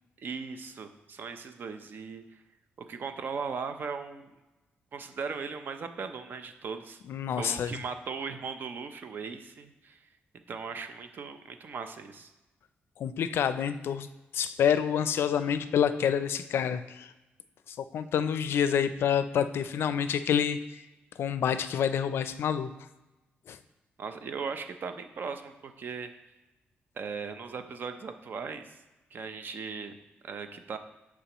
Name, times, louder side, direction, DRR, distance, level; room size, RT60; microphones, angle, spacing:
voice 1, 0.2-2.4 2.8-4.3 4.9-7.0 7.4-10.0 10.5-12.3 24.0-26.1 26.9-28.8 29.1-30.0 30.2-30.8, right 5 dB, 55° right, 8 dB, 0.6 m, -38 dB
voice 2, 7.1-7.7 13.0-14.1 14.3-17.1 17.7-20.6 21.2-22.7 23.5-23.6, left 8 dB, 70° left, 12 dB, 0.4 m, -28 dB
9.9 x 4.8 x 3.0 m, 1.0 s
cardioid pair, 110°, 4 cm